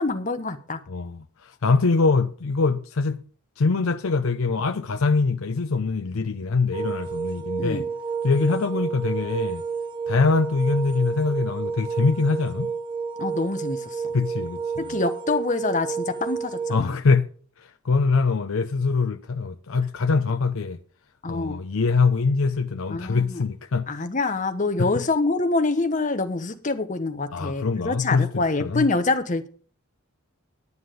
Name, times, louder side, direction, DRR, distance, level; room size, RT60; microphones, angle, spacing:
voice 1, 0.0-0.8 7.6-7.8 13.2-13.8 14.9-16.9 21.2-21.6 22.9-23.4 23.9-29.5, left 3 dB, 35° left, 1.0 m, -25 dB
voice 2, 0.9-3.2 3.6-7.8 8.2-9.6 10.1-12.7 14.1-15.0 16.7-17.3 17.6-20.8 21.3-23.9 24.8-24.9 27.3-28.9, left 4 dB, 70° left, 0.6 m, -23 dB
sound 1, 6.7-16.8, right 5 dB, 20° right, 0.6 m, -30 dB
9.6 x 9.5 x 5.0 m
head